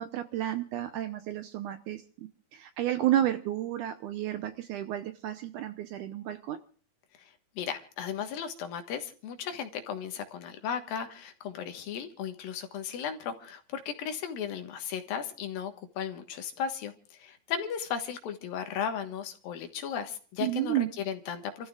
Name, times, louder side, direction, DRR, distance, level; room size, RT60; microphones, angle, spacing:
voice 1, 0.0-6.6 20.4-20.9, right 12 dB, 75° right, 9 dB, 2.0 m, -31 dB
voice 2, 7.6-21.7, left 8 dB, 75° left, 7 dB, 3.1 m, -36 dB
30.0 x 14.0 x 2.4 m, 0.41 s
omnidirectional pair, 4.3 m